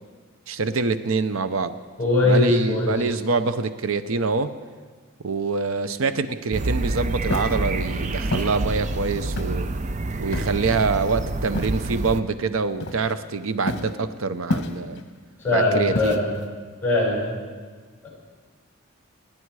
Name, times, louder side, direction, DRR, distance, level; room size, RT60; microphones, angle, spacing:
voice 1, 0.5-1.8 2.2-4.5 5.2-9.7 10.2-15.0 15.5-16.2, right 4 dB, 85° right, 11 dB, 0.7 m, -25 dB
voice 2, 2.0-2.9 15.4-16.3 16.8-17.2 18.0-18.1, left 2 dB, 10° left, -5 dB, 6.5 m, -20 dB
sound 1, 6.5-12.2, right 2 dB, 35° right, 0.5 m, -28 dB
Walk footsteps, 7.2-7.6 8.3-8.5 9.4-9.7 10.3-10.7 11.5-11.9 12.8-13.3 13.7-14.0 14.5-15.0 15.9-16.4, left 2 dB, 55° left, 1.2 m, -29 dB
27.5 x 10.5 x 4.8 m, 1.5 s
head